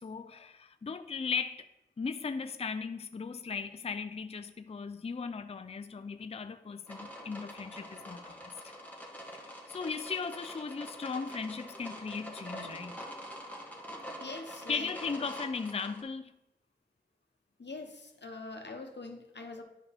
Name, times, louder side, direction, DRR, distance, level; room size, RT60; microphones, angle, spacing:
voice 1, 0.0-1.7 2.0-8.5 9.3-13.0 14.7-16.3, left 5 dB, 35° left, 10 dB, 0.4 m, -37 dB
sound 1, 6.9-16.0, equal, 10° left, 1.7 m, -45 dB
voice 2, 14.2-14.9 17.6-19.6, left 3 dB, 80° left, 5 dB, 0.9 m, -43 dB
11.0 x 4.8 x 3.4 m, 0.89 s
wide cardioid pair, 45°, 18 cm